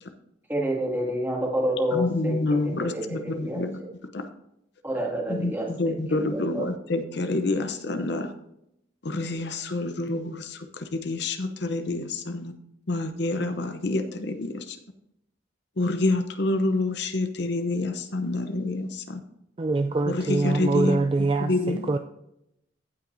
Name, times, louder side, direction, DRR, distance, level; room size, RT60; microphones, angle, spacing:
voice 1, 0.5-3.9 4.8-6.6, equal, 10° right, -3 dB, 2.2 m, -29 dB
voice 2, 1.9-3.8 4.1-4.2 5.3-8.3 9.0-10.6 10.9-12.5 12.9-14.6 15.8-19.2 20.1-21.0 21.4-21.8, left 2 dB, 55° left, 8 dB, 0.7 m, -27 dB
voice 3, 19.6-22.0, right 3 dB, 25° right, 6 dB, 0.3 m, -24 dB
16.0 x 5.8 x 2.6 m, 0.79 s
head